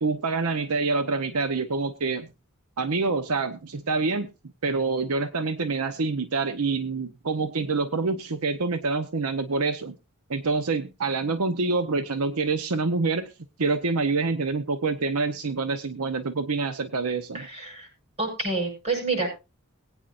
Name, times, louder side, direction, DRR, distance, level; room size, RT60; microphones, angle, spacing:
voice 1, 0.0-2.3 2.8-4.3 4.6-10.0 10.3-13.3 13.6-17.5, right 3 dB, 85° right, 10 dB, 0.8 m, -26 dB
voice 2, 17.3-17.9 18.2-19.3, right 3 dB, 30° right, -2 dB, 7.6 m, -28 dB
21.0 x 9.1 x 2.5 m, 0.27 s
head